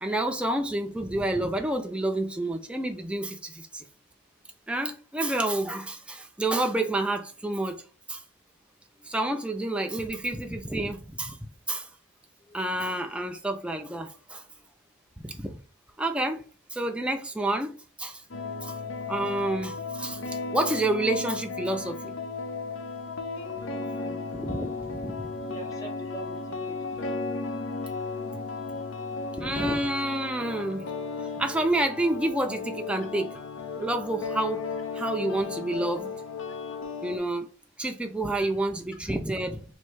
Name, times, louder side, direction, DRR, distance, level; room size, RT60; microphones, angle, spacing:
voice 1, 0.0-3.8 4.7-7.8 8.1-8.2 9.0-11.4 11.7-11.9 12.5-14.4 15.2-15.5 16.0-16.5 16.7-18.2 18.6-18.7 19.1-22.1 24.3-25.3 29.4-30.9 31.4-33.4 33.8-34.7 34.9-36.1 37.0-37.5 37.8-39.6, right 1 dB, 5° right, 0.4 m, -29 dB
sound 1, 18.3-37.2, left 4 dB, 90° left, 0.6 m, -35 dB
voice 2, 23.5-24.3 25.4-27.2 28.7-28.8, right 3 dB, 15° left, 0.8 m, -45 dB
3.2 x 2.7 x 4.5 m
head